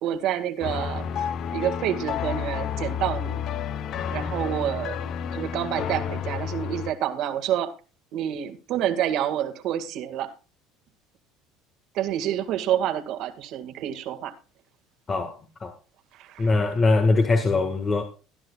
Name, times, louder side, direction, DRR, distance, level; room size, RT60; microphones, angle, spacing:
voice 1, 0.0-3.4 4.1-5.0 5.3-7.7 8.1-10.3 11.9-14.3 16.1-16.5, right 11 dB, 60° right, 1.9 m, -28 dB
sound 1, 0.6-6.9, left 8 dB, 50° left, 0.8 m, -30 dB
voice 2, 15.1-15.7 16.4-18.0, left 3 dB, 30° left, 1.6 m, -22 dB
19.5 x 10.0 x 2.4 m
supercardioid pair, 105°, 0 cm